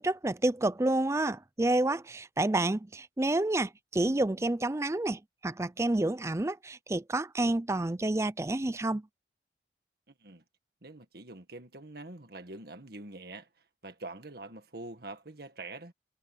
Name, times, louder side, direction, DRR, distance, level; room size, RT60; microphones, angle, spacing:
voice 1, 0.0-9.0, right 2 dB, 15° right, 0.4 m, -29 dB
voice 2, 10.8-13.5 13.8-15.9, right 2 dB, 55° right, 1.8 m, -45 dB
head